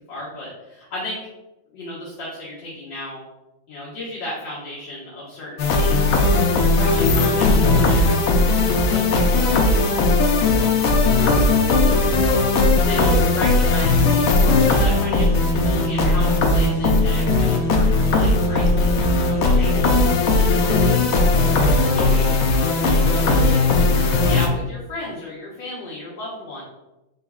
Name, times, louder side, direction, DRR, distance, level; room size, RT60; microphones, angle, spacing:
voice 1, 0.1-1.3 1.7-3.2 3.7-6.4 6.7-8.2 8.8-9.6 10.5-10.7 12.6-22.6 22.9-23.9 24.2-26.6, left 2 dB, 70° left, -9 dB, 1.7 m, -34 dB
sound 1, 5.6-24.5, left 2 dB, 90° left, 0.7 m, -18 dB
4.4 x 4.0 x 2.3 m, 0.98 s
omnidirectional pair, 2.1 m